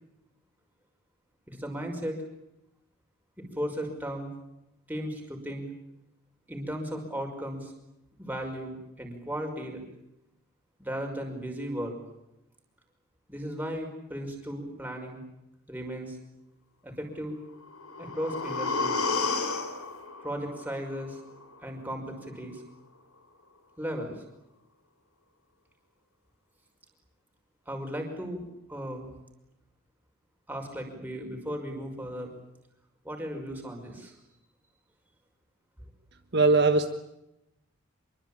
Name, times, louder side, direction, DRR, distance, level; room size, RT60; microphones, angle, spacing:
voice 1, 1.5-2.2 3.4-4.3 4.9-5.7 6.5-7.7 8.2-9.8 10.8-12.0 13.3-15.2 15.7-16.2 16.8-17.4 18.0-19.1 20.2-21.2 21.6-22.6 23.8-24.2 27.7-28.4 28.7-29.1 30.5-32.3 33.0-34.1, equal, 10° right, 2 dB, 5.6 m, -36 dB
sound 1, 17.6-21.6 21.9-22.0, left 4 dB, 85° left, 3.8 m, -32 dB
voice 2, 36.3-36.9, right 3 dB, 50° right, 6 dB, 1.5 m, -20 dB
25.5 x 23.0 x 8.8 m, 0.88 s
head